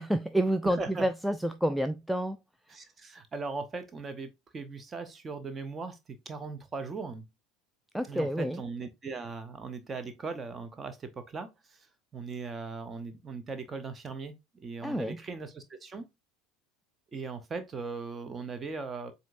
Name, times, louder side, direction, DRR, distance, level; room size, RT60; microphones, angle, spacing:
voice 1, 0.0-2.4 7.9-8.6 14.8-15.2, right 1 dB, ahead, 0.3 m, -29 dB
voice 2, 0.6-1.1 2.7-7.2 8.0-11.8 12.1-16.1 17.1-19.1, right 4 dB, 25° right, 0.9 m, -39 dB
7.4 x 2.8 x 2.5 m
figure-of-eight pair, 70°, 0 cm